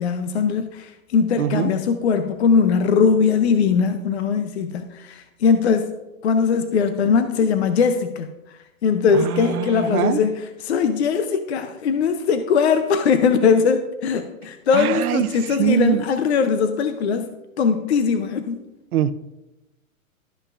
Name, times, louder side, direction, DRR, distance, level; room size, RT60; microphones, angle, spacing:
voice 1, 0.0-5.9 6.2-17.3 17.6-18.6, left 6 dB, 50° left, 0.6 m, -20 dB
voice 2, 1.4-1.7 9.1-10.2 14.7-16.0 18.9-19.1, right 11 dB, 90° right, 0.7 m, -23 dB
12.5 x 5.5 x 2.4 m
hypercardioid pair, 175°, 42 cm